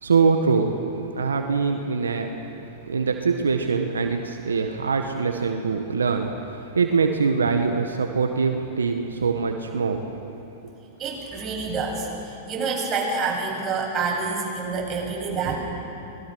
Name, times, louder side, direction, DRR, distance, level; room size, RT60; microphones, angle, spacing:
voice 1, 0.0-0.8 1.1-10.0, right 5 dB, 90° right, 4 dB, 1.4 m, -23 dB
voice 2, 11.0-15.6, right 4 dB, 30° right, -2 dB, 7.6 m, -27 dB
25.0 x 20.5 x 6.3 m, 2.8 s
hypercardioid pair, 105°, 0 cm